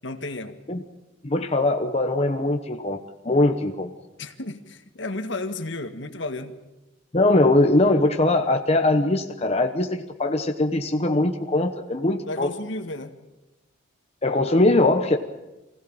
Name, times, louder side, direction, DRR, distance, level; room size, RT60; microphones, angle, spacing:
voice 1, 0.0-0.6 4.2-6.6 12.3-13.2, left 2 dB, 65° left, 8 dB, 1.7 m, -33 dB
voice 2, 1.2-3.0 3.2-3.9 7.1-12.5 14.2-15.2, left 2 dB, 30° left, 4 dB, 1.0 m, -21 dB
24.0 x 16.5 x 8.9 m, 1.0 s
head